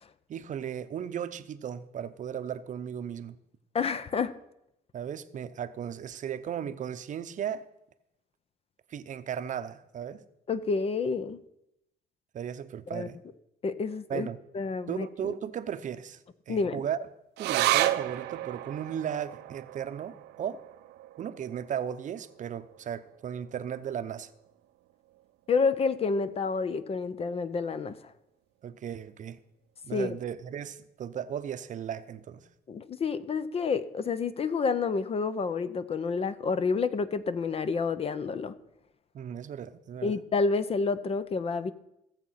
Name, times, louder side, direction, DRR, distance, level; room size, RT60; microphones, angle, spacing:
voice 1, 0.3-3.4 4.9-7.6 8.9-10.2 12.3-13.2 14.1-14.4 14.9-16.2 16.5-17.0 17.4-20.6 21.2-24.3 28.6-29.4 29.8-32.4 39.1-40.2, right 9 dB, 50° right, 12 dB, 0.8 m, -36 dB
voice 2, 3.7-4.3 10.5-11.4 12.9-13.1 13.6-14.3 14.5-15.3 16.5-16.8 25.5-28.0 29.9-30.2 32.7-38.5 40.0-41.7, left 4 dB, 35° left, 14 dB, 0.7 m, -29 dB
sound 1, 17.4-24.1 24.5-24.6 24.9-25.6 26.1-26.2, right 14 dB, 80° right, 0.7 m, -33 dB
16.5 x 7.3 x 5.7 m, 0.84 s
cardioid pair, 110°, 17 cm